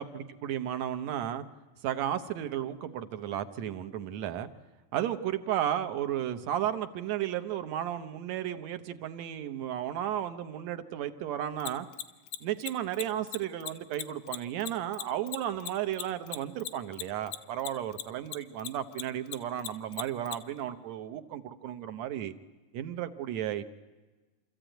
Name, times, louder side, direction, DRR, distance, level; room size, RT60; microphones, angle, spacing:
voice 1, 0.0-1.4 1.8-4.5 4.9-11.9 12.4-22.3 22.7-23.6, right 11 dB, 70° right, 10 dB, 2.0 m, -34 dB
Mechanisms, 11.6-18.4 18.6-20.4, left 12 dB, 85° left, 2.4 m, -36 dB
27.0 x 14.0 x 9.0 m, 1.2 s
omnidirectional pair, 3.4 m